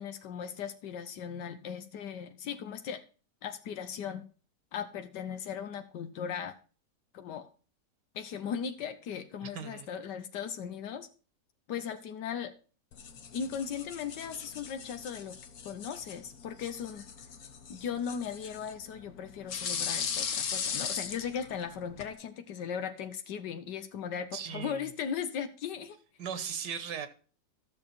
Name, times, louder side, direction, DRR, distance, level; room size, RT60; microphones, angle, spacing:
voice 1, 0.0-3.0 3.4-4.2 4.7-6.6 7.1-7.5 8.1-11.1 11.7-12.5 13.3-15.4 15.6-17.0 17.7-26.0, left 7 dB, 80° left, 1.5 m, -38 dB
voice 2, 9.4-9.9 24.3-24.8 26.2-27.1, right 7 dB, 80° right, 1.8 m, -38 dB
sound 1, 12.9-22.1, left 7 dB, 60° left, 1.5 m, -39 dB
13.5 x 6.7 x 4.2 m
omnidirectional pair, 1.8 m